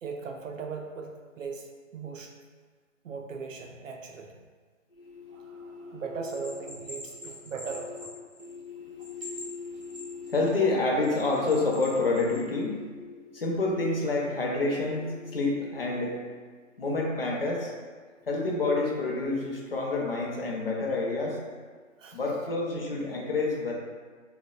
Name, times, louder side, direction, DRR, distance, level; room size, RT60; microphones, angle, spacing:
voice 1, 0.0-2.3 3.0-4.3 5.3-8.1 22.0-22.2, right 5 dB, 75° right, 2 dB, 0.5 m, -39 dB
voice 2, 5.0-6.0 8.4-16.2 16.8-17.7 18.3-21.4 22.1-23.7, left 3 dB, 50° left, -2 dB, 0.5 m, -29 dB
Bell, 6.2-8.7 9.0-10.5 11.0-12.4, left 1 dB, 25° right, 0.6 m, -44 dB
3.2 x 2.0 x 2.3 m, 1.5 s
hypercardioid pair, 170°, 39 cm